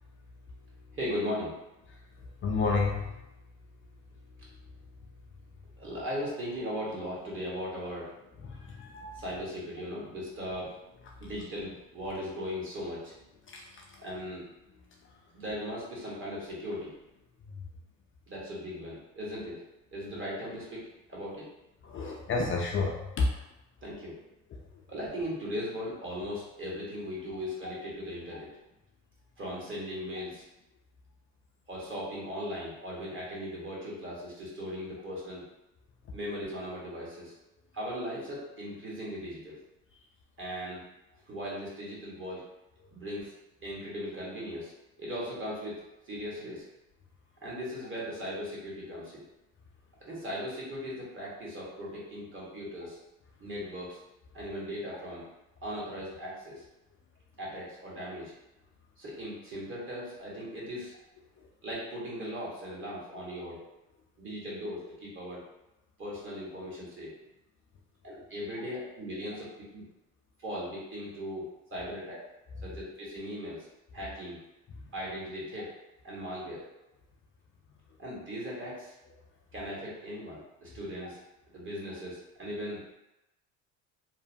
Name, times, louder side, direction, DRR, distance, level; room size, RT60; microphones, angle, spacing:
voice 1, 0.9-1.6 5.8-8.1 9.1-10.7 11.2-13.2 14.0-14.4 15.3-16.9 18.3-19.6 19.9-20.8 21.1-21.5 23.8-24.2 24.9-28.5 29.4-30.4 31.7-35.4 36.1-37.3 37.7-39.6 40.4-40.8 41.3-42.4 42.9-43.3 43.6-44.7 45.0-46.6 47.4-49.2 50.0-53.0 53.4-54.0 54.3-55.2 55.6-56.6 57.4-58.3 59.0-60.9 61.6-63.6 64.2-65.4 66.0-67.1 68.0-69.4 69.7-69.8 70.4-71.4 71.7-72.2 72.6-73.7 73.9-74.4 74.9-75.7 76.0-76.6 78.0-78.9 79.5-81.2 81.5-82.9, equal, 30° right, -5 dB, 1.2 m, -38 dB
voice 2, 2.4-3.0 8.4-9.2 21.8-23.3, left 3 dB, 35° left, -1 dB, 0.4 m, -29 dB
2.8 x 2.1 x 2.6 m, 0.93 s
supercardioid pair, 80°, 40 cm